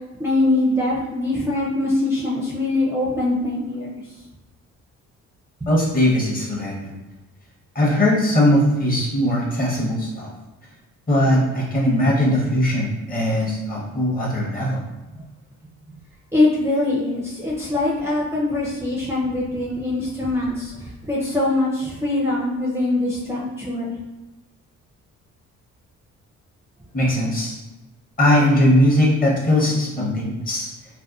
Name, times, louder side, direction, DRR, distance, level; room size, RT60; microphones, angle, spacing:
voice 1, 0.2-3.9 5.6-5.7 16.3-20.7 21.0-23.9, left 2 dB, 10° right, -6 dB, 0.5 m, -22 dB
voice 2, 5.7-7.0 7.7-10.3 11.1-14.8 26.9-27.6 28.2-30.7, left 1 dB, 30° left, -3 dB, 0.8 m, -19 dB
2.7 x 2.1 x 2.3 m, 1.1 s
cardioid pair, 90°, 30 cm